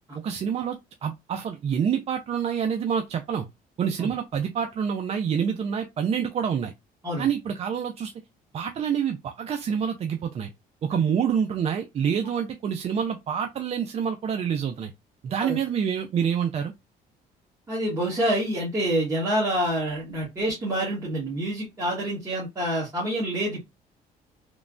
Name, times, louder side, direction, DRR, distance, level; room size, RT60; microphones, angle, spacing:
voice 1, 0.2-3.5 3.8-6.7 7.2-8.1 8.5-10.5 10.8-14.9 15.2-16.7, right 7 dB, 40° right, 0.4 m, -27 dB
voice 2, 17.7-23.6, right 1 dB, 20° right, 1.2 m, -27 dB
3.1 x 2.1 x 2.4 m
cardioid pair, 110°, 17 cm